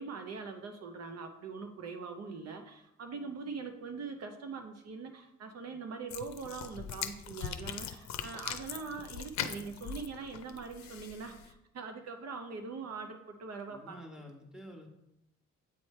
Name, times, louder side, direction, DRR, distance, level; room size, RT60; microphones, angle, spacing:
voice 1, 0.0-14.0, right 4 dB, 55° right, 5 dB, 0.7 m, -42 dB
sound 1, 6.1-11.5, left 9 dB, 65° left, 0.6 m, -41 dB
voice 2, 13.7-14.9, equal, ahead, 0 dB, 1.3 m, -49 dB
8.4 x 3.1 x 4.2 m, 0.85 s
cardioid pair, 90°, 30 cm